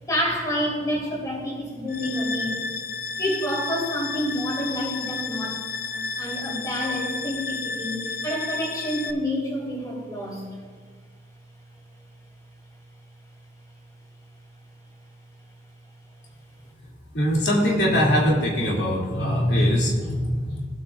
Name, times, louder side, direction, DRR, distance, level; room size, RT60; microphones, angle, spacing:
voice 1, 0.1-2.7 3.2-10.5, equal, 20° left, -4 dB, 3.4 m, -28 dB
sound 1, 1.9-9.1, left 4 dB, 55° left, 0.5 m, -32 dB
voice 2, 17.1-20.7, equal, 85° left, -4 dB, 2.6 m, -22 dB
18.5 x 8.6 x 2.5 m, 1.5 s
head